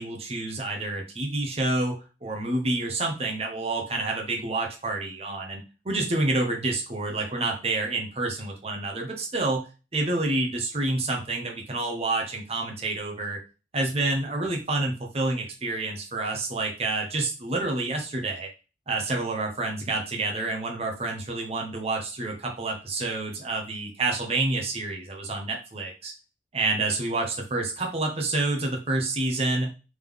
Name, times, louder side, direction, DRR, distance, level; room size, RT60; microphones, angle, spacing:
voice 1, 0.0-9.7 9.9-13.4 13.7-18.5 18.9-26.1 26.5-29.7, right 2 dB, 35° right, 1 dB, 0.8 m, -28 dB
3.6 x 3.1 x 3.5 m, 0.32 s
head